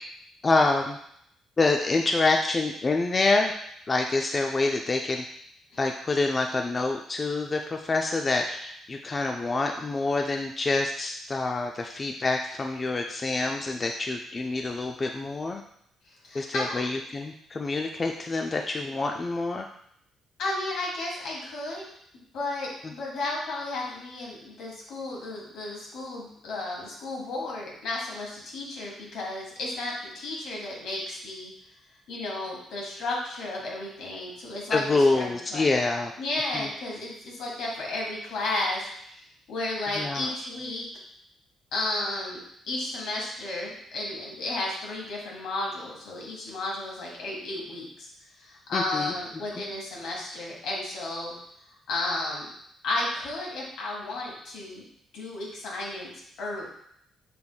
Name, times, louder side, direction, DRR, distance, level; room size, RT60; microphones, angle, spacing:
voice 1, 0.4-1.0 1.6-3.5 3.9-5.2 5.8-15.6 16.3-19.7 22.8-22.9 34.7-36.1 36.5-36.7 40.0-40.3 48.7-49.1 49.5-49.7, left 3 dB, 30° left, 3 dB, 0.3 m, -26 dB
voice 2, 16.1-16.8 20.4-21.9 22.3-31.5 32.1-35.6 36.2-39.2 39.5-40.9 41.7-48.1 48.4-51.3 51.9-52.5 52.8-54.8 55.1-56.1 56.4-56.7, left 2 dB, 80° left, -3 dB, 1.5 m, -33 dB
5.8 x 3.4 x 2.2 m, 0.70 s
cardioid pair, 90°, 0 cm